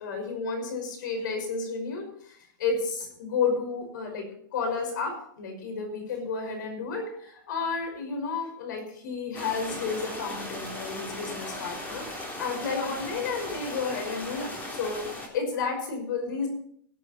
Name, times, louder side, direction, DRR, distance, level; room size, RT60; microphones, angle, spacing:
voice 1, 0.0-4.3 4.5-16.5, left 4 dB, 70° left, 4 dB, 5.5 m, -32 dB
sound 1, 9.3-15.3, left 1 dB, 15° left, 3.5 m, -37 dB
17.5 x 9.1 x 4.4 m, 0.65 s
supercardioid pair, 150°, 11 cm